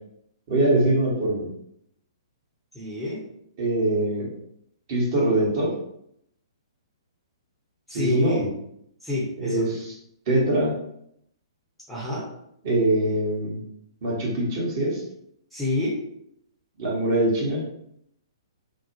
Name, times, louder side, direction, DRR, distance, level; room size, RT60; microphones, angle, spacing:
voice 1, 0.5-1.5 3.6-4.3 4.9-5.7 7.9-8.5 9.4-9.9 10.3-10.7 12.6-13.6 14.0-15.0 16.8-17.6, right 1 dB, 40° right, -5 dB, 1.0 m, -23 dB
voice 2, 2.7-3.2 7.9-8.4 9.0-9.7 11.9-12.3 15.5-16.0, left 2 dB, ahead, -8 dB, 0.6 m, -27 dB
2.6 x 2.1 x 2.7 m, 0.74 s
figure-of-eight pair, 115°, 3 cm